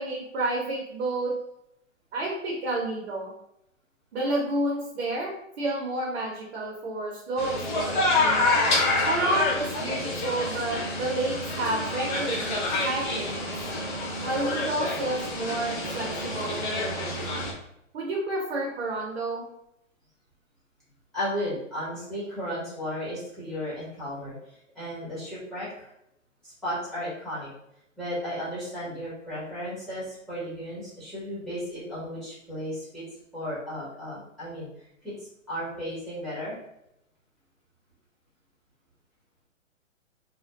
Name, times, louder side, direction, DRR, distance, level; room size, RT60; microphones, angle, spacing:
voice 1, 0.0-1.3 2.1-3.3 4.1-5.3 5.6-8.4 9.1-13.4 14.2-17.3 17.9-19.4, right 2 dB, 55° right, -2 dB, 0.7 m, -30 dB
sound 1, 7.4-17.5, left 2 dB, 35° left, 0.6 m, -27 dB
voice 2, 21.1-24.3 24.7-25.9 26.4-27.5 28.0-33.0 33.3-34.7 35.0-35.2 35.5-36.5, equal, ahead, -11 dB, 0.8 m, -34 dB
2.5 x 2.2 x 2.2 m, 0.81 s
hypercardioid pair, 135°, 39 cm